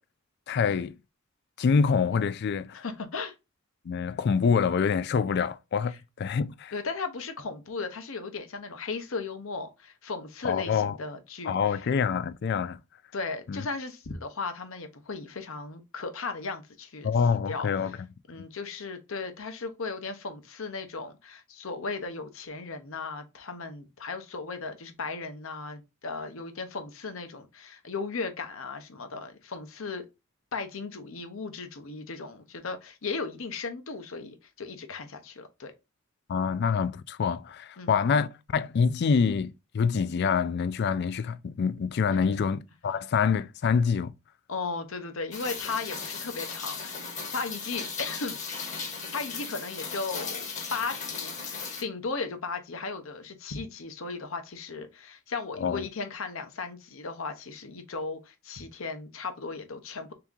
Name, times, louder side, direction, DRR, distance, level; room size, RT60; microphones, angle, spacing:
voice 1, 0.5-1.0 1.6-2.8 3.9-6.7 10.4-11.0 11.4-12.8 13.5-13.7 17.0-18.0 36.3-44.1 55.6-55.9, left 6 dB, 50° left, 0.3 m, -26 dB
voice 2, 2.7-3.3 5.9-6.0 6.7-11.8 13.1-17.1 17.5-18.0 18.3-30.1 30.5-35.7 37.8-37.9 42.1-42.4 44.5-46.9 47.3-48.4 49.1-60.1, left 4 dB, 70° left, 0.8 m, -36 dB
Rain, 45.3-51.8, left 5 dB, 35° left, 1.0 m, -37 dB
3.5 x 2.9 x 3.7 m
head